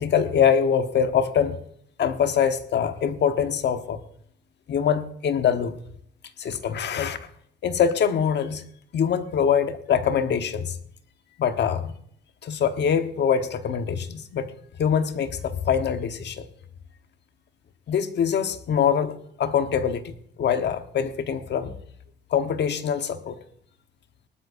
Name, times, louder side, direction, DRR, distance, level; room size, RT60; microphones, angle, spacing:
voice 1, 0.0-1.6 2.0-4.0 4.7-5.7 6.4-7.2 7.6-8.6 8.9-10.8 11.4-11.9 12.4-14.5 14.8-16.4 17.9-20.1 20.4-21.7 22.3-23.4, left 7 dB, 60° left, 8 dB, 1.2 m, -24 dB
19.0 x 12.5 x 2.7 m, 0.67 s
cardioid pair, 90°, 20 cm